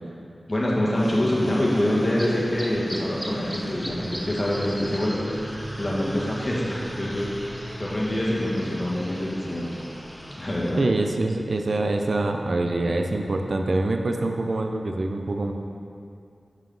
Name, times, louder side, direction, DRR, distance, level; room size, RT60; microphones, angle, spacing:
voice 1, 0.5-5.3 5.8-9.8 10.4-10.8, left 1 dB, 40° left, -6 dB, 1.8 m, -25 dB
sound 1, 0.9-10.8, equal, 5° right, 0.8 m, -37 dB
voice 2, 10.8-15.5, right 2 dB, 70° right, 4 dB, 0.5 m, -25 dB
7.3 x 5.6 x 3.9 m, 2.5 s
cardioid pair, 40°, 0 cm